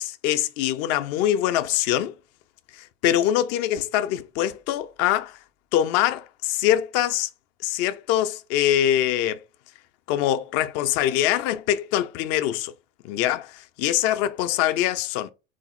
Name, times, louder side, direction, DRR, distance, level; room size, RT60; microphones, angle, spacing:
voice 1, 0.0-2.1 2.7-5.4 5.7-7.3 7.6-9.4 10.1-12.7 13.0-15.3, left 12 dB, 40° left, 0.4 m, -23 dB
3.5 x 2.4 x 2.9 m
hypercardioid pair, 80°, 37 cm